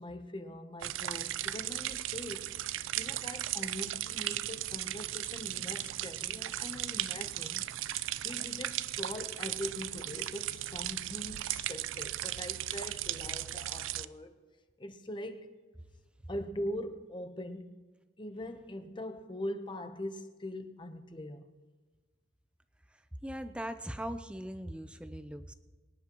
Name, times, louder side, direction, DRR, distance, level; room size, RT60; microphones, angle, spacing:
voice 1, 0.0-2.6 3.0-7.7 7.9-14.4 14.8-15.6 16.3-17.8 18.2-21.4, left 1 dB, 25° left, 0.9 m, -42 dB
sound 1, 0.8-14.1, right 13 dB, 85° right, 0.4 m, -36 dB
voice 2, 23.2-25.5, equal, 5° right, 0.5 m, -40 dB
24.5 x 10.0 x 3.0 m
head